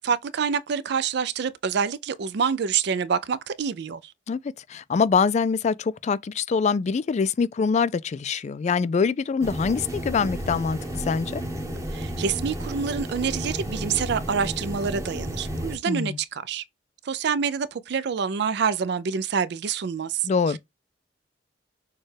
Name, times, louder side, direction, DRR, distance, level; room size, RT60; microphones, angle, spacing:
voice 1, 0.0-4.1 11.9-16.6 17.1-20.6, right 6 dB, 65° right, 0.4 m, -27 dB
voice 2, 4.7-11.4 15.9-16.2 20.2-20.6, left 5 dB, 40° left, 0.3 m, -24 dB
sound 1, 9.4-15.8, equal, 15° right, 1.1 m, -32 dB
6.4 x 2.3 x 3.2 m
head